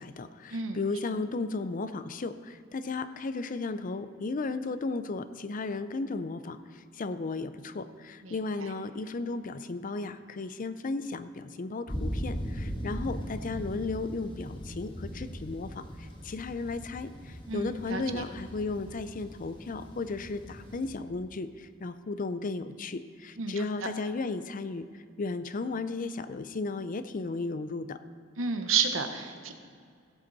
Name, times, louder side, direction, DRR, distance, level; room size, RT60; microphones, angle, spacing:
voice 1, 0.0-28.0, left 3 dB, 40° left, 12 dB, 0.5 m, -35 dB
sound 1, 11.9-21.0, equal, 25° left, 1.5 m, -39 dB
voice 2, 17.5-18.2 23.4-23.5 28.4-29.5, right 6 dB, 80° right, 7 dB, 1.0 m, -30 dB
16.5 x 8.0 x 4.1 m, 2.3 s
head